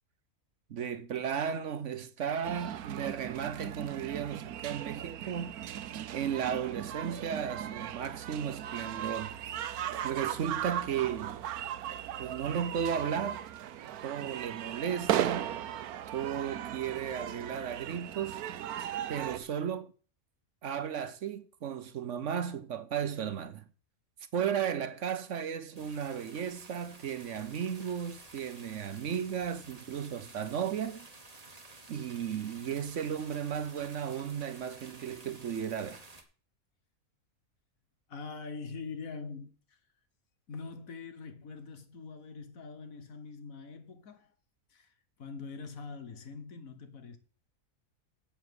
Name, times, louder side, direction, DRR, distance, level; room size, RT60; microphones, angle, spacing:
voice 1, 0.7-5.6 6.1-9.4 10.0-11.4 12.2-13.4 14.0-15.5 16.1-18.4 19.1-19.9 20.6-23.6 24.3-31.1 31.9-36.0, right 8 dB, 60° right, 1.0 m, -35 dB
sound 1, 2.4-19.4, right 11 dB, 85° right, 1.2 m, -37 dB
sound 2, 25.8-36.2, right 2 dB, 25° right, 1.7 m, -52 dB
voice 2, 38.1-39.8 40.5-44.3 44.7-44.9 45.2-47.2, left 4 dB, 70° left, 1.7 m, -43 dB
7.8 x 7.1 x 8.0 m
omnidirectional pair, 1.5 m